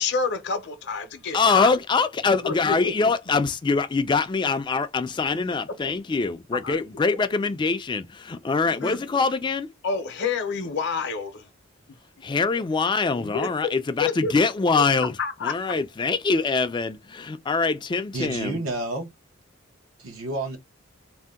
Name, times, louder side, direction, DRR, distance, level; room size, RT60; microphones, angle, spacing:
voice 1, 0.0-1.7 2.4-3.1 6.6-6.8 8.7-9.0 9.8-11.5 13.1-13.7 14.0-14.3 15.2-15.6, left 5 dB, 55° left, 0.7 m, -28 dB
voice 2, 1.3-9.7 12.2-15.2 15.4-18.6, left 4 dB, 20° left, 0.3 m, -24 dB
voice 3, 18.1-19.1 20.0-20.6, right 2 dB, 85° right, 0.9 m, -30 dB
2.6 x 2.1 x 3.4 m
head